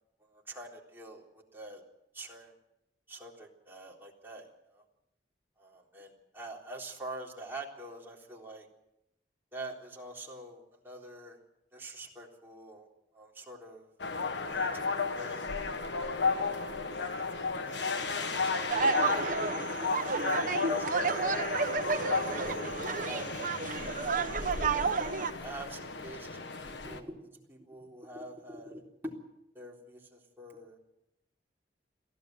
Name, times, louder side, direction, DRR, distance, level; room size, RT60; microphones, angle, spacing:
voice 1, 0.2-1.8 2.1-2.5 3.1-4.8 5.6-8.7 9.5-11.4 11.7-12.9 13.1-13.9 14.5-14.8 15.1-15.6 16.4-16.8 17.7-18.8 19.7-20.0 20.7-21.3 22.2-23.5 23.7-23.9 24.2-24.7 25.4-29.1 29.5-30.8, right 1 dB, 15° right, -2 dB, 3.7 m, -46 dB
sound 1, 14.0-27.0, left 4 dB, 85° left, 1.5 m, -34 dB
sound 2, 18.7-25.3, right 4 dB, 50° right, 1.1 m, -31 dB
23.0 x 15.5 x 7.8 m, 0.84 s
head